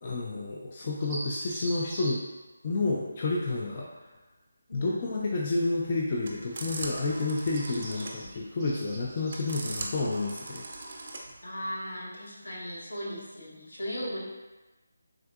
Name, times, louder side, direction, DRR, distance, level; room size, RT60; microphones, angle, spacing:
voice 1, 0.0-2.2 2.6-4.0 4.7-10.6, left 3 dB, 30° left, -4 dB, 0.3 m, -30 dB
sound 1, 1.0-2.1 6.4-6.7 7.0-9.8, right 1 dB, 5° right, 0.6 m, -42 dB
voice 2, 4.7-5.0 11.4-14.3, equal, 75° left, -4 dB, 0.9 m, -37 dB
sound 2, 5.5-11.4, right 2 dB, 45° right, 0.4 m, -40 dB
3.5 x 2.6 x 2.3 m, 1.2 s
figure-of-eight pair, 170°, 0 cm